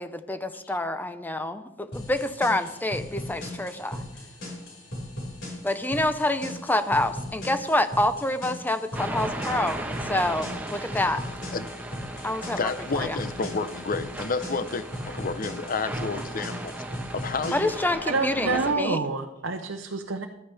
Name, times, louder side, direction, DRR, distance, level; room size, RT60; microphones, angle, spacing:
voice 1, 0.0-4.0 5.6-11.2 12.2-13.2 17.5-19.0, left 1 dB, 10° left, 10 dB, 0.7 m, -27 dB
sound 1, 1.9-17.9, left 1 dB, 65° left, 5.3 m, -38 dB
sound 2, 8.9-18.8, right 1 dB, 10° right, 1.1 m, -37 dB
voice 2, 12.6-16.8 17.1-17.7, left 4 dB, 45° left, 13 dB, 0.7 m, -30 dB
voice 3, 18.1-20.3, right 3 dB, 65° right, 3 dB, 0.8 m, -27 dB
15.0 x 13.5 x 3.4 m, 0.95 s
head